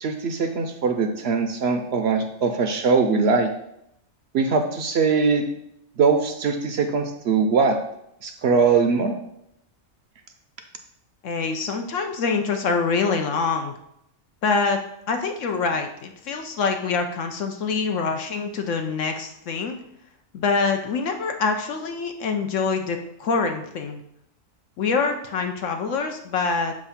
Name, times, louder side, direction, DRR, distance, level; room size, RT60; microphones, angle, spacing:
voice 1, 0.0-3.5 4.3-5.4 6.0-7.8 8.2-9.2, right 4 dB, 65° right, 6 dB, 0.8 m, -21 dB
voice 2, 11.2-13.7 14.4-14.8 15.1-19.8 20.3-24.0 24.8-26.7, left 4 dB, 75° left, 4 dB, 1.0 m, -25 dB
7.3 x 2.6 x 5.6 m, 0.77 s
omnidirectional pair, 1.3 m